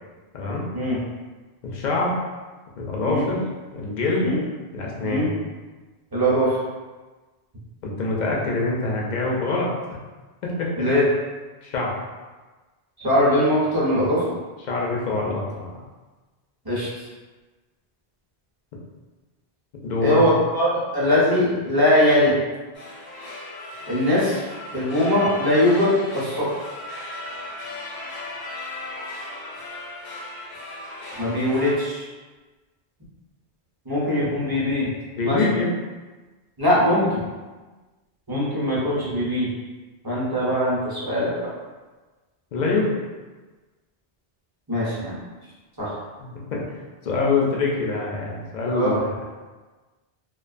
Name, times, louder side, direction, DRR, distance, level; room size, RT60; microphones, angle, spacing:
voice 1, 0.3-0.7 1.6-2.2 2.8-3.5 3.7-4.4 4.7-5.3 7.8-9.7 10.4-10.7 11.6-11.9 14.7-15.8 19.8-20.2 35.2-35.7 42.5-43.0 46.2-46.6 47.0-49.1, left 3 dB, 55° left, -2 dB, 0.5 m, -25 dB
voice 2, 6.1-6.6 10.8-11.1 13.0-14.2 16.6-16.9 20.0-22.4 23.9-24.4 24.7-26.5 31.2-32.1 33.9-34.9 35.2-35.4 36.6-37.2 38.3-39.5 40.0-41.5 44.7-45.2 45.8-45.9 48.7-49.0, left 1 dB, 25° right, -9 dB, 0.6 m, -21 dB
sound 1, 22.7-31.8, left 2 dB, 85° left, 0.9 m, -36 dB
2.5 x 2.2 x 2.4 m, 1.3 s
omnidirectional pair, 1.1 m